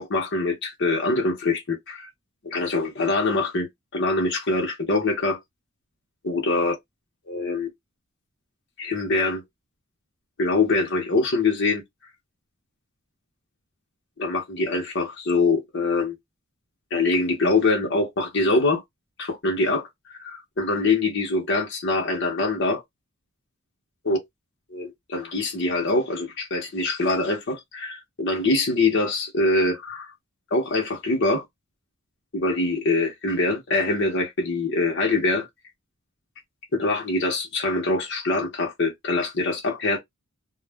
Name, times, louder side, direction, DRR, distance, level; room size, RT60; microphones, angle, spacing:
voice 1, 0.0-2.1 2.4-5.4 6.2-6.7 7.3-7.7 8.8-9.4 10.4-11.8 14.2-16.1 16.9-18.8 19.2-22.8 24.0-24.2 24.7-30.1 30.5-31.4 32.3-35.5 36.7-40.0, left 3 dB, 60° left, 0.8 m, -24 dB
2.3 x 2.1 x 3.2 m
head